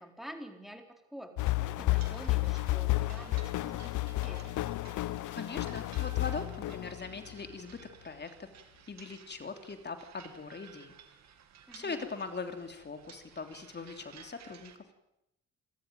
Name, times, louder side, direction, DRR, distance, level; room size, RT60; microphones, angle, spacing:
voice 1, 0.0-4.6 11.7-12.2, equal, ahead, 5 dB, 4.2 m, -48 dB
sound 1, 1.4-7.3, left 18 dB, 80° left, 0.8 m, -32 dB
sound 2, 1.8-14.8, right 8 dB, 65° right, 2.8 m, -56 dB
voice 2, 5.3-8.5 8.9-10.9 11.7-14.8, left 4 dB, 35° left, 6 dB, 3.2 m, -41 dB
28.0 x 14.5 x 9.3 m, 0.83 s
cardioid pair, 90°, 30 cm